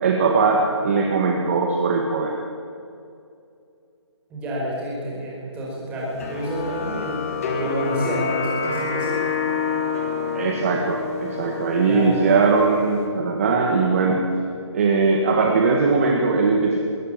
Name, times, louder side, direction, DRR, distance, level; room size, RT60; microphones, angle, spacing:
voice 1, 0.0-2.3 10.3-14.2 14.7-16.8, right 4 dB, 30° right, 1 dB, 1.9 m, -20 dB
voice 2, 4.3-9.2 11.9-12.3, right 1 dB, 10° right, -4 dB, 5.0 m, -29 dB
sound 1, 6.2-13.1, left 5 dB, 30° left, 2.5 m, -28 dB
21.5 x 17.5 x 9.0 m, 2.5 s
hypercardioid pair, 170°, 15 cm